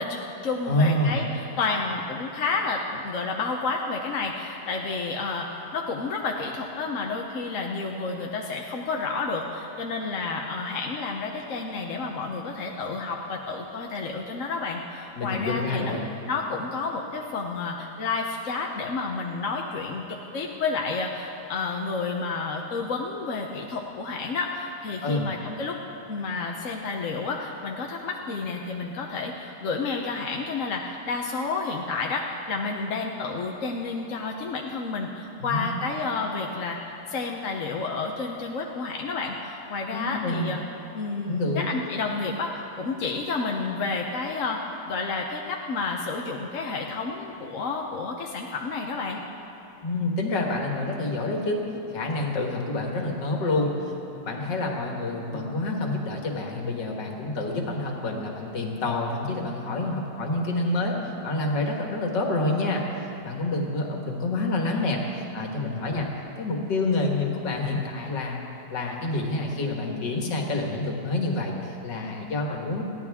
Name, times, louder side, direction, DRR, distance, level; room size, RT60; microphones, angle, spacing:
voice 1, 0.0-15.9 16.2-25.8 26.1-40.6 40.9-49.2, left 4 dB, 55° left, 0 dB, 1.1 m, -30 dB
voice 2, 0.6-1.2 15.2-16.0 25.0-25.3 35.4-35.8 39.9-40.5 41.2-41.7 49.8-51.6 51.9-62.8 63.2-66.1 66.4-72.8, left 2 dB, 80° left, 0 dB, 2.3 m, -28 dB
22.0 x 15.5 x 3.6 m, 2.9 s
omnidirectional pair, 1.9 m